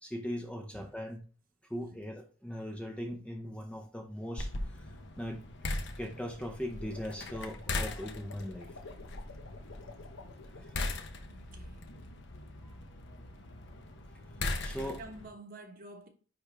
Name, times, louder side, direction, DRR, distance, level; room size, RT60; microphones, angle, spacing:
voice 1, 0.0-1.2 1.7-4.5 5.2-5.4 6.0-8.7 14.6-15.0, equal, 5° left, 0.6 m, -39 dB
sound 1, 4.4-15.3, left 2 dB, 55° left, 0.9 m, -40 dB
sound 2, 6.1-11.0, left 4 dB, 80° left, 1.0 m, -52 dB
voice 2, 11.3-11.9 14.7-16.1, right 2 dB, 40° right, 1.1 m, -49 dB
9.6 x 3.5 x 3.4 m
head